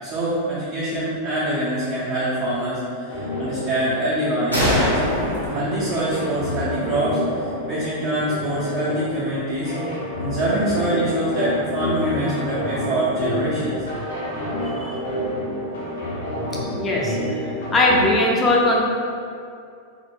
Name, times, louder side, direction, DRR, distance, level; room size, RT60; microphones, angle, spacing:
voice 1, 0.0-5.0 5.5-9.7 10.2-13.8, right 1 dB, 35° right, -10 dB, 0.5 m, -25 dB
sound 1, 3.1-18.1, left 1 dB, 65° left, 0.6 m, -29 dB
sound 2, 4.5-8.0, left 1 dB, 90° right, 0.5 m, -26 dB
voice 2, 16.7-17.4 17.7-18.8, left 2 dB, 20° left, -3 dB, 0.4 m, -19 dB
2.1 x 2.1 x 3.0 m, 2.4 s
figure-of-eight pair, 90°, 0 cm